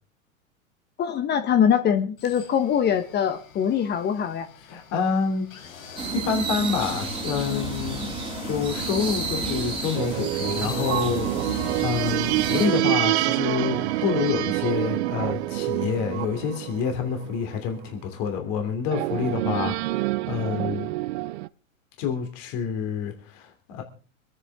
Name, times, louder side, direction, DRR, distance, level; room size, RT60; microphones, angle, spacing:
voice 1, 1.0-4.5, left 8 dB, 25° left, 1.1 m, -23 dB
sound 1, 2.2-18.0 18.3-18.4, left 4 dB, 75° left, 2.4 m, -43 dB
voice 2, 4.7-5.4 6.1-8.2 8.4-11.3 11.8-20.9 22.0-23.8, left 6 dB, 45° left, 3.1 m, -27 dB
sound 2, 6.0-12.7, right 3 dB, 10° right, 2.6 m, -31 dB
sound 3, 10.0-17.8 18.9-21.5, right 17 dB, 55° right, 0.6 m, -27 dB
25.5 x 9.8 x 3.6 m
hypercardioid pair, 105°, 41 cm